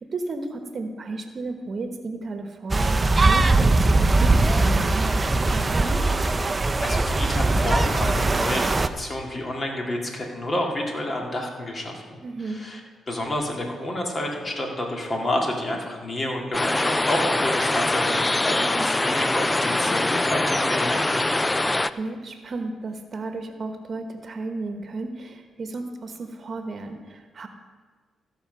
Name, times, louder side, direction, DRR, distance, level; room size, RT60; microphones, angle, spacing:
voice 1, 0.1-6.0 12.2-12.6 18.6-18.9 21.6-27.5, right 3 dB, 50° right, 6 dB, 1.1 m, -34 dB
sound 1, 2.7-8.9, right 2 dB, 30° right, 0.6 m, -20 dB
voice 2, 6.8-12.0 12.5-12.8 13.1-21.2, left 1 dB, 35° left, 0 dB, 2.3 m, -29 dB
sound 2, 16.5-21.9, left 2 dB, 20° left, 0.4 m, -23 dB
15.0 x 5.9 x 5.5 m, 1.5 s
cardioid pair, 65°, 0 cm